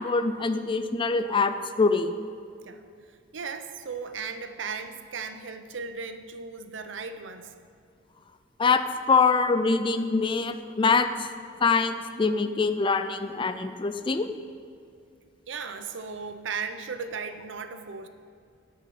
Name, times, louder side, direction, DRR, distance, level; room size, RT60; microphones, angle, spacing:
voice 1, 0.0-2.2 8.6-11.3 11.6-14.3, left 4 dB, 25° left, 10 dB, 0.4 m, -24 dB
voice 2, 3.3-7.5 15.5-18.1, right 5 dB, 70° right, 9 dB, 0.7 m, -36 dB
9.3 x 6.3 x 7.6 m, 2.4 s
head